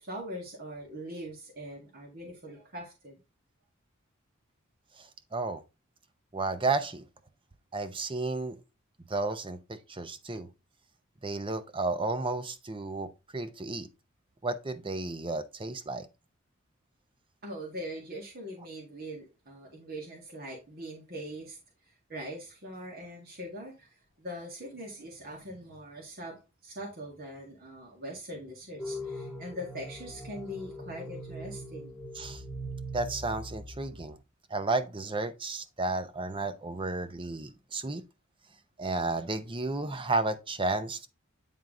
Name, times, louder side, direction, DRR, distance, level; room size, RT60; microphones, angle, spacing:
voice 1, 0.0-3.2 17.4-21.6 22.1-32.0, equal, 45° right, 1.8 m, -42 dB
voice 2, 5.0-5.6 6.3-7.0 7.7-8.6 9.1-10.5 11.2-13.9 14.4-16.1 32.1-32.4 32.9-34.2 34.5-38.0 38.8-41.1, right 3 dB, 25° right, 0.6 m, -32 dB
sound 1, 28.8-34.2, equal, ahead, 1.6 m, -41 dB
9.1 x 3.6 x 3.6 m
head